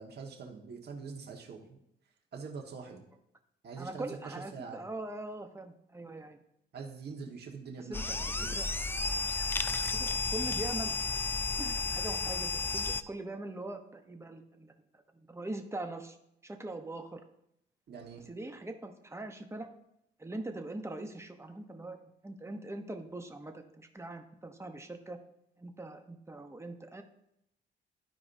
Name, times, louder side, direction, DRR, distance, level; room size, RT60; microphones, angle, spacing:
voice 1, 0.0-1.8 2.3-3.1 3.6-4.8 6.7-8.5 17.9-18.3, right 5 dB, 55° right, 1 dB, 1.6 m, -44 dB
voice 2, 3.8-6.4 7.8-8.7 9.9-11.0 11.6-14.7 15.1-16.2 16.4-17.2 18.3-19.7 20.2-22.0 22.2-25.2 25.6-27.0, right 2 dB, 15° right, 6 dB, 0.9 m, -42 dB
sound 1, 7.9-13.0, left 4 dB, 10° left, 0.4 m, -32 dB
13.0 x 4.7 x 2.7 m, 0.78 s
cardioid pair, 90°, 20 cm